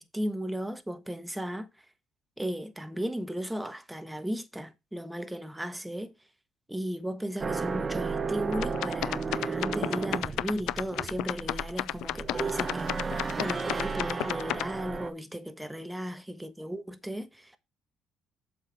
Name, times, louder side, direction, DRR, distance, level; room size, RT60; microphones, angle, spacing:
voice 1, 0.0-1.7 2.4-6.1 6.7-17.6, equal, 5° right, 1.2 m, -36 dB
sound 1, 7.4-15.1, right 4 dB, 30° right, 0.9 m, -33 dB
sound 2, 8.5-14.7, left 15 dB, 80° left, 0.3 m, -32 dB
7.2 x 5.4 x 4.7 m
supercardioid pair, 80°, 0 cm